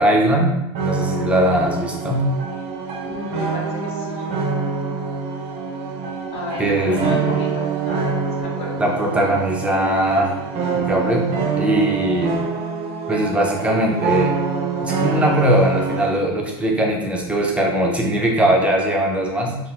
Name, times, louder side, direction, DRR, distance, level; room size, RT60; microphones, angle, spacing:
voice 1, 0.0-2.3 6.6-7.4 8.8-10.4 10.7-11.3 11.6-12.4 13.1-14.4 14.8-19.6, right 1 dB, 10° right, -1 dB, 0.6 m, -20 dB
sound 1, 0.7-16.2, right 5 dB, 50° right, 0.6 m, -25 dB
voice 2, 3.0-4.3 6.3-8.8 16.1-16.2, left 2 dB, 50° left, -1 dB, 0.9 m, -32 dB
4.0 x 2.0 x 2.4 m, 0.91 s
hypercardioid pair, 100°, 14 cm